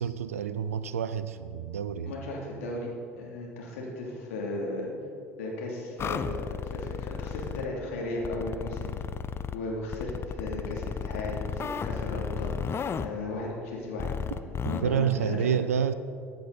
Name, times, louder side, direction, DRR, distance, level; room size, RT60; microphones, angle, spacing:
voice 1, 0.0-2.2 14.6-15.9, right 8 dB, 80° right, 13 dB, 0.5 m, -28 dB
voice 2, 2.1-4.9 5.4-8.9 9.5-15.4, left 2 dB, 70° left, -2 dB, 2.8 m, -36 dB
sound 1, 6.0-7.7 8.2-9.6 9.9-13.1 14.0-14.8, left 6 dB, 35° left, 0.6 m, -33 dB
14.5 x 10.0 x 4.1 m, 2.5 s
figure-of-eight pair, 60°, 8 cm